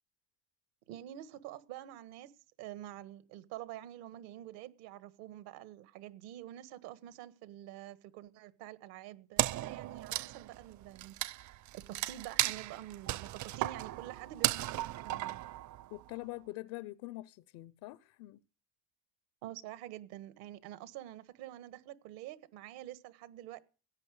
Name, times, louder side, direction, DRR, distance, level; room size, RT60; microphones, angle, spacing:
voice 1, 0.9-2.3 2.6-11.1 11.7-15.4 19.4-23.6, right 13 dB, 80° right, 1.6 m, -47 dB
Wood, 9.4-16.1, right 15 dB, 50° right, 0.6 m, -35 dB
voice 2, 15.9-18.4, left 19 dB, 80° left, 0.8 m, -44 dB
16.5 x 9.1 x 6.4 m
cardioid pair, 120°, 37 cm